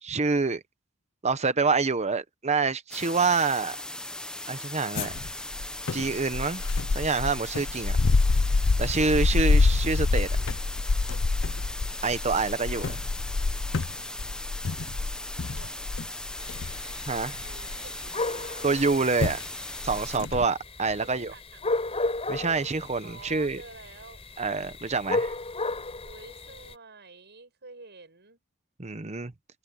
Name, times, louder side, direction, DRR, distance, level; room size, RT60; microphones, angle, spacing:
voice 1, 0.0-0.6 1.2-3.8 4.5-5.3 5.9-6.6 6.9-8.0 8.8-10.3 12.0-13.0 17.1-17.4 18.6-19.4 19.8-21.3 22.3-23.6 24.4-25.3 28.8-29.3, right 4 dB, 30° right, 0.9 m, -26 dB
sound 1, 2.9-20.2, left 1 dB, 5° left, 0.8 m, -38 dB
sound 2, 5.0-18.1 18.8-18.9 19.2-19.4 19.8-20.5, left 3 dB, 60° left, 0.6 m, -27 dB
voice 2, 9.4-9.8 10.3-10.6 15.6-15.7 16.6-17.0 17.4-18.7 20.8-22.0 23.0-24.2 26.0-28.4, right 3 dB, 50° right, 7.1 m, -50 dB
sound 3, 16.4-26.7, left 2 dB, 30° left, 4.6 m, -35 dB
head